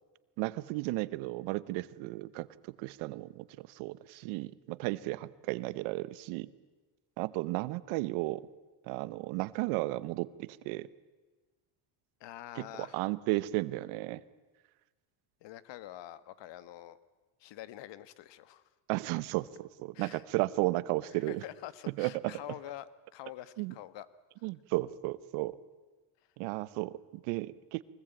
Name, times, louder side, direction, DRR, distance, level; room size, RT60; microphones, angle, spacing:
voice 1, 0.4-6.5 7.2-8.5 8.9-10.9 12.6-14.2 18.9-21.4 22.0-22.3 23.6-23.7 24.4-25.6 26.4-27.8, right 20 dB, 80° right, 18 dB, 1.1 m, -34 dB
voice 2, 12.2-13.1 15.4-17.0 17.4-18.7 19.9-20.2 21.2-24.1 26.2-26.3, left 13 dB, 60° left, 15 dB, 1.4 m, -46 dB
23.5 x 20.5 x 9.0 m, 1.3 s
supercardioid pair, 100°, 48 cm